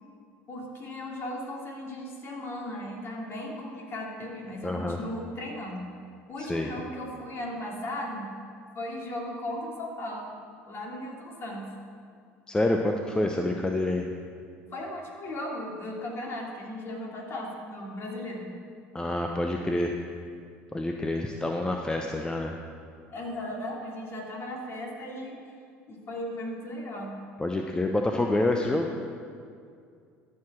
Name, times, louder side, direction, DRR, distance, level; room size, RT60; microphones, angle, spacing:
voice 1, 0.5-5.9 6.3-8.3 8.7-10.4 10.7-11.7 14.7-18.5 23.1-25.4 25.9-27.2, left 1 dB, 40° left, -2 dB, 2.7 m, -36 dB
voice 2, 4.6-5.0 6.4-6.7 12.5-14.1 18.9-20.0 20.7-22.6 27.4-28.9, left 1 dB, 15° left, 2 dB, 0.7 m, -27 dB
13.5 x 4.8 x 6.1 m, 2.2 s
hypercardioid pair, 80°, 6 cm